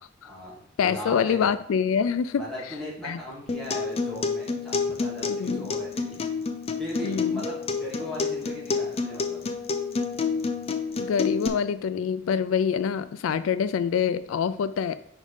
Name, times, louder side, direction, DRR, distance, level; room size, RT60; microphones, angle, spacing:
voice 1, 0.2-1.5 2.3-6.2 6.8-9.4, equal, ahead, -8 dB, 2.7 m, -38 dB
voice 2, 0.8-2.4 3.0-3.2 5.3-5.7 7.0-7.4 11.0-15.0, left 7 dB, 90° left, 14 dB, 0.3 m, -26 dB
Acoustic guitar, 3.5-11.5, left 4 dB, 30° left, 0.5 m, -29 dB
5.3 x 5.2 x 5.0 m, 0.70 s
head